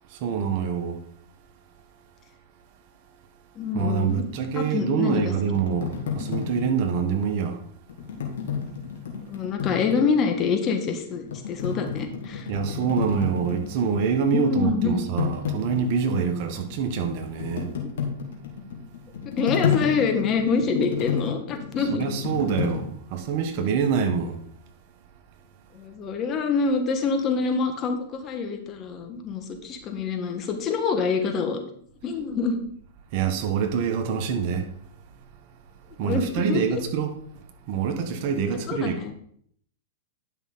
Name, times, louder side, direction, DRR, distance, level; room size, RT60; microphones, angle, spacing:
voice 1, 0.1-1.0 3.7-7.6 12.5-17.7 21.9-24.4 33.1-34.7 36.0-37.1 37.7-39.0, right 6 dB, 55° right, 1.4 m, -26 dB
voice 2, 3.5-4.3 4.5-5.2 9.3-12.5 14.3-15.0 19.4-22.0 25.7-31.6 32.0-32.6 36.0-36.8 38.5-39.1, left 5 dB, 35° left, 1.6 m, -26 dB
sound 1, 3.8-7.2 7.9-10.6 11.0-14.3 14.5-22.8, left 7 dB, 75° left, 2.4 m, -31 dB
11.0 x 5.8 x 4.1 m
hypercardioid pair, 115°, 0 cm